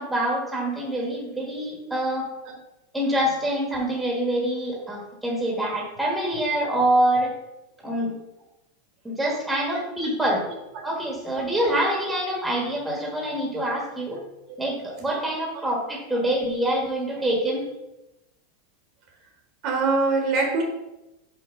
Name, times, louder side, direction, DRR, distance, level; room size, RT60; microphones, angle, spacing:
voice 1, 0.0-2.3 2.9-7.3 7.8-8.2 9.0-10.5 10.8-14.2 14.6-17.7, right 1 dB, 5° right, -1 dB, 1.3 m, -25 dB
voice 2, 19.6-20.6, right 3 dB, 35° right, 2 dB, 1.2 m, -23 dB
5.6 x 4.4 x 5.6 m, 0.94 s
supercardioid pair, 175°, 0 cm